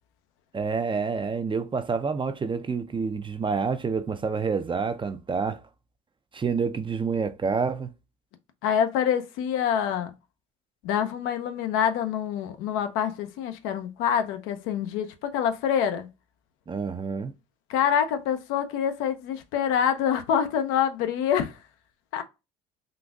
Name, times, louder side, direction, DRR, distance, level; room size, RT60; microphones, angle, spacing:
voice 1, 0.5-5.6 6.3-7.9 16.7-17.3, right 5 dB, 25° right, 0.4 m, -28 dB
voice 2, 8.6-10.1 10.8-16.1 17.7-21.6 22.1-22.2, left 8 dB, 75° left, 0.6 m, -26 dB
3.9 x 2.5 x 2.3 m
supercardioid pair, 65°, 21 cm